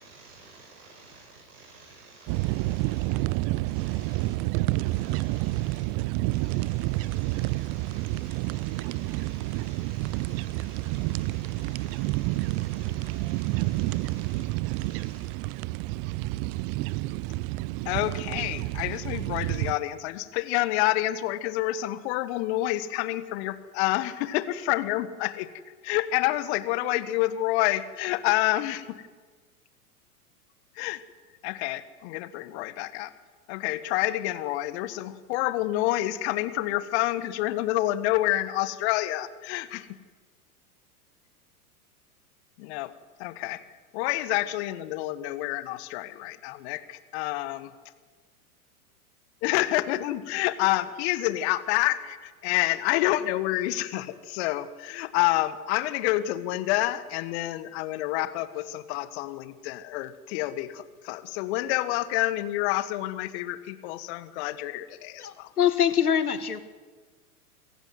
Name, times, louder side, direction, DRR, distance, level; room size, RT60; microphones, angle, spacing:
voice 1, 0.0-3.2 3.6-4.3 4.7-5.8 6.3-14.4 14.7-15.2, right 3 dB, 55° right, -1 dB, 7.5 m, -51 dB
sound 1, 2.3-19.8, right 19 dB, 30° right, 0.7 m, -29 dB
voice 2, 17.8-25.5 25.8-29.0 30.7-31.0 31.4-33.1 33.5-39.9 42.6-42.9 43.2-43.6 43.9-47.7 49.4-65.5, left 16 dB, 45° left, 13 dB, 1.6 m, -28 dB
voice 3, 65.2-66.6, left 9 dB, 75° left, 12 dB, 1.8 m, -24 dB
26.0 x 15.5 x 9.4 m, 1.4 s
figure-of-eight pair, 95°, 45 cm